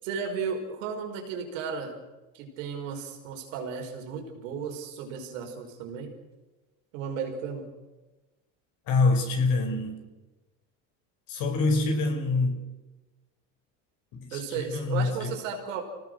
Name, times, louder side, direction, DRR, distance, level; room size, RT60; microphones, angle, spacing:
voice 1, 0.0-2.0 2.3-6.1 6.9-7.7 14.3-15.8, right 6 dB, 90° right, 3 dB, 5.3 m, -34 dB
voice 2, 8.9-10.0 11.3-12.6 14.1-15.3, left 3 dB, 65° left, 4 dB, 5.5 m, -26 dB
26.5 x 18.5 x 6.6 m, 1.1 s
supercardioid pair, 105°, 37 cm